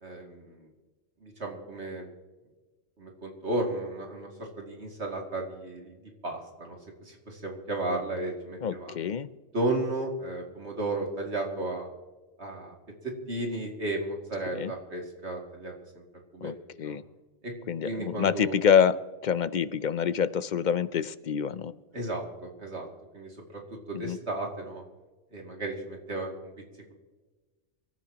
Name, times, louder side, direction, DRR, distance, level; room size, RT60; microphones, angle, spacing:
voice 1, 0.0-0.7 1.2-2.1 3.0-8.9 9.5-11.9 12.4-12.7 13.0-16.0 16.3-16.5 16.8-17.0 17.4-17.5 17.8-18.7 21.9-22.9 23.1-23.6 23.9-24.8 25.3-26.5, right 2 dB, 75° right, 0 dB, 2.7 m, -34 dB
voice 2, 8.6-9.3 14.5-14.7 16.4-17.0 17.7-21.7 23.9-24.2, left 7 dB, 55° left, 15 dB, 0.6 m, -26 dB
25.5 x 13.5 x 2.9 m, 1.2 s
omnidirectional pair, 1.2 m